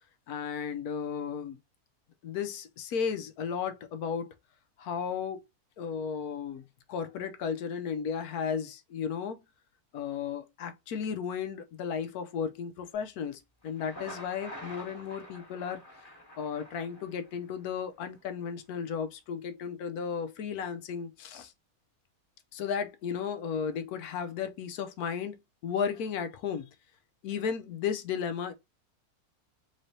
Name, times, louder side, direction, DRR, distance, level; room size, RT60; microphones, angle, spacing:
voice 1, 0.3-1.6 2.2-4.4 4.8-5.4 5.8-9.4 9.9-15.8 16.4-21.5 22.5-26.7 27.2-28.5, left 7 dB, 80° left, 1.2 m, -34 dB
Thunder, 13.6-17.6, left 1 dB, 15° left, 1.5 m, -47 dB
3.8 x 3.3 x 2.7 m
omnidirectional pair, 1.6 m